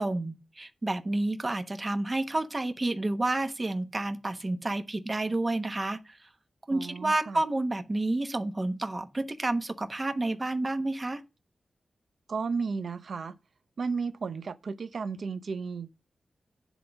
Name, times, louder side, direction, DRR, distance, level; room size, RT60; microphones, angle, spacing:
voice 1, 0.0-6.3 6.7-11.2, right 2 dB, 30° right, 1.1 m, -30 dB
voice 2, 6.7-7.4 12.3-13.3 13.8-16.0, right 5 dB, 70° right, 0.7 m, -33 dB
10.0 x 3.9 x 5.9 m
cardioid pair, 65°, 0 cm